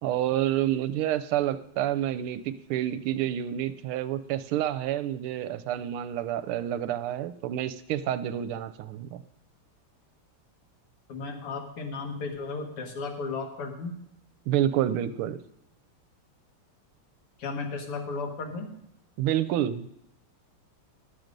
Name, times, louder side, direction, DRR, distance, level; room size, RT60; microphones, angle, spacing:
voice 1, 0.0-9.2 14.5-15.4 19.2-19.9, right 11 dB, 80° right, 13 dB, 1.5 m, -28 dB
voice 2, 11.1-14.0 17.4-18.8, left 4 dB, 85° left, 3 dB, 2.4 m, -34 dB
11.0 x 7.7 x 5.2 m, 0.75 s
omnidirectional pair, 2.4 m